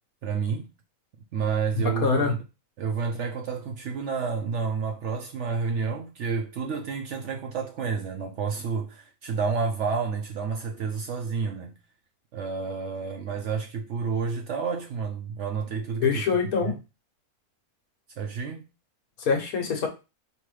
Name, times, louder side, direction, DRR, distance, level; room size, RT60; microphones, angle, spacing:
voice 1, 0.2-0.7 1.3-2.4 2.8-11.8 12.3-16.1 16.6-16.8 18.2-18.7, right 5 dB, 65° right, 0.8 m, -30 dB
voice 2, 2.0-2.4 16.0-16.8 19.2-19.9, left 5 dB, 75° left, 1.4 m, -24 dB
4.8 x 3.1 x 3.2 m
omnidirectional pair, 1.6 m